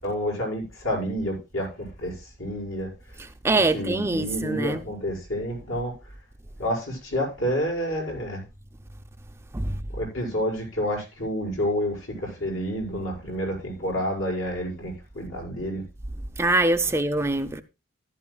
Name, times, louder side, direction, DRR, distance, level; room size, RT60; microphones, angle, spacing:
voice 1, 0.0-3.2 3.7-6.1 6.6-8.4 9.9-15.8, equal, 65° left, 5.6 m, -29 dB
voice 2, 3.4-4.8 9.5-9.8 16.4-17.6, right 2 dB, 10° right, 0.4 m, -23 dB
14.0 x 12.0 x 2.3 m
head